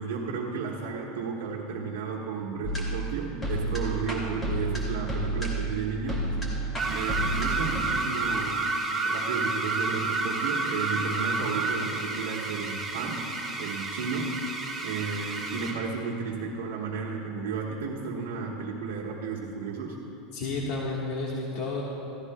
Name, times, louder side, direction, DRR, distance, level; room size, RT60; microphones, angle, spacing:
voice 1, 0.0-6.2 6.9-8.7 9.0-13.3 13.6-14.4 14.8-20.0, right 5 dB, 90° right, -4 dB, 1.2 m, -33 dB
sound 1, 2.6-7.8, right 1 dB, 20° left, 2.2 m, -31 dB
sound 2, 6.8-15.9, right 3 dB, 10° right, 1.6 m, -30 dB
voice 2, 20.3-21.8, left 3 dB, 65° left, -3 dB, 1.4 m, -31 dB
15.5 x 15.5 x 2.2 m, 3.0 s
supercardioid pair, 130°, 0 cm